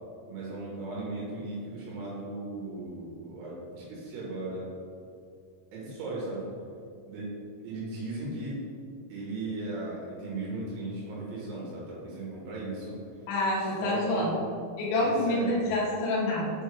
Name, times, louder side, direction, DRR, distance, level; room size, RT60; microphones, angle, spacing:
voice 1, 0.3-4.7 5.7-6.5 7.1-7.4 7.6-8.6 9.1-13.0 13.6-14.3 15.0-15.6, right 2 dB, 70° right, -5 dB, 3.5 m, -37 dB
voice 2, 13.3-14.3 14.8-16.5, left 1 dB, 65° left, -6 dB, 3.4 m, -27 dB
7.7 x 5.4 x 3.4 m, 2.4 s
omnidirectional pair, 6.0 m